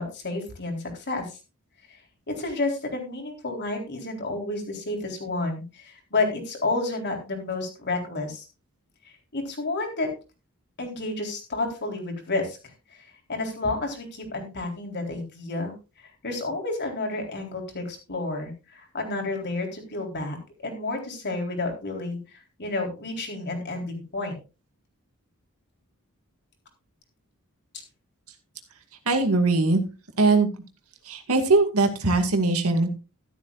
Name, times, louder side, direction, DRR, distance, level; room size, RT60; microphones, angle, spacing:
voice 1, 0.0-1.4 1.9-2.0 2.3-8.5 9.1-10.1 10.8-12.6 12.9-15.7 16.0-20.4 20.6-24.4, left 2 dB, 50° left, 2 dB, 3.9 m, -30 dB
voice 2, 29.1-29.8 30.2-30.5 31.0-32.9, right 3 dB, 80° right, 7 dB, 2.2 m, -21 dB
13.5 x 12.0 x 2.5 m, 0.30 s
head